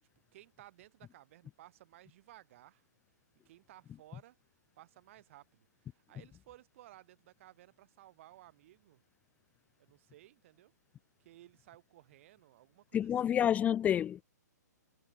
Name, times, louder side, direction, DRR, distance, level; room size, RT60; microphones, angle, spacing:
voice 1, 0.3-2.8 3.5-4.4 4.8-9.0 9.8-10.7 11.2-13.4, right 15 dB, 45° right, 7.3 m, -58 dB
voice 2, 12.9-14.2, left 10 dB, 15° left, 0.6 m, -29 dB
figure-of-eight pair, 125°, 10 cm